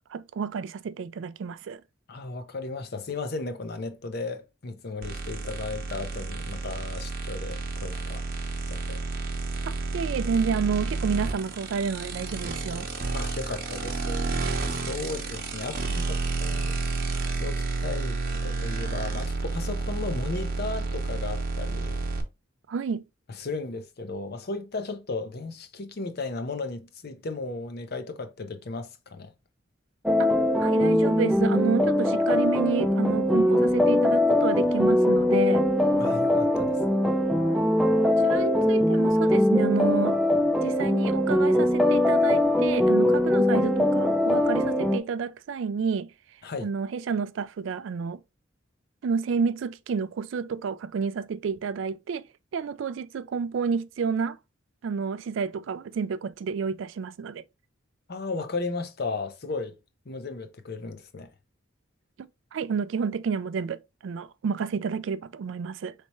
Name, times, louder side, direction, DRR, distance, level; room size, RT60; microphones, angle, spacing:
voice 1, 0.1-1.8 9.6-12.9 22.7-23.0 30.2-30.3 30.6-35.7 38.2-40.2 40.6-46.1 46.6-48.2 49.0-52.2 52.5-54.4 54.8-57.4 62.5-65.9, right 5 dB, 65° right, 0.3 m, -30 dB
voice 2, 2.1-8.2 8.7-9.0 13.1-14.3 14.7-16.8 17.4-22.1 23.3-29.3 36.0-37.0 46.4-46.7 58.1-59.8 60.1-61.3, left 3 dB, 50° left, 0.7 m, -35 dB
sound 1, 5.0-22.2, right 3 dB, 50° right, 0.8 m, -30 dB
sound 2, 30.1-45.0, left 1 dB, ahead, 0.4 m, -22 dB
4.1 x 3.3 x 3.0 m
head